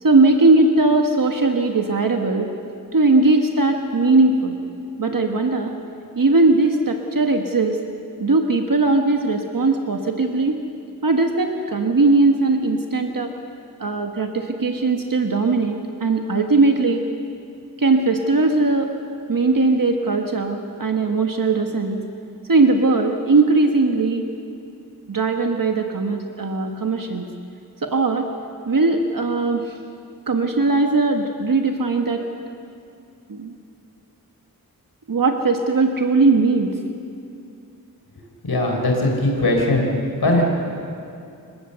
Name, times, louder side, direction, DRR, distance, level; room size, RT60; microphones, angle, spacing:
voice 1, 0.0-2.5 2.9-4.6 5.0-5.7 6.1-7.8 8.2-10.6 11.0-13.3 13.8-17.0 17.8-18.9 19.3-22.0 22.5-24.3 25.1-27.3 27.8-28.3 28.7-29.8 30.3-32.2 33.3-33.5 35.1-36.8, right 3 dB, 60° right, 3 dB, 1.4 m, -19 dB
voice 2, 38.4-39.9 40.2-40.4, left 2 dB, 90° left, 1 dB, 4.0 m, -19 dB
29.5 x 17.0 x 6.9 m, 2.5 s
wide cardioid pair, 85°, 37 cm